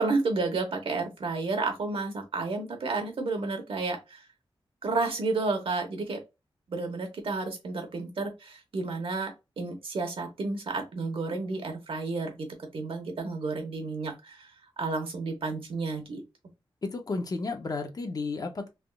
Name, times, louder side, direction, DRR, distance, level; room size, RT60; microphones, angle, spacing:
voice 1, 0.0-4.2 4.8-6.2 6.7-12.5 12.7-14.5 14.8-16.2, right 3 dB, 75° right, 0.9 m, -31 dB
voice 2, 16.8-18.7, left 3 dB, 40° left, 0.6 m, -32 dB
3.4 x 2.4 x 2.2 m
wide cardioid pair, 120°, 9 cm